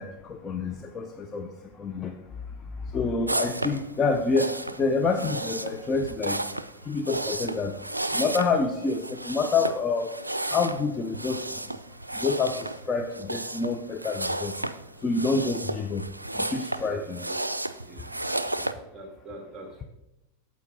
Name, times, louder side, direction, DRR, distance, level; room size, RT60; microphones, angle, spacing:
voice 1, 0.0-1.5 1.8-2.1 2.9-6.4 6.9-7.8 8.1-10.1 10.5-11.4 12.1-14.5 15.0-16.1 16.4-17.2, left 4 dB, 25° left, 5 dB, 0.6 m, -27 dB
sound 1, 3.3-18.7, right 1 dB, 85° right, 0.3 m, -33 dB
voice 2, 16.8-17.4 17.8-18.1 18.5-19.8, right 2 dB, 10° right, 1 dB, 2.1 m, -45 dB
9.0 x 7.2 x 3.8 m, 0.90 s
figure-of-eight pair, 90°, 0 cm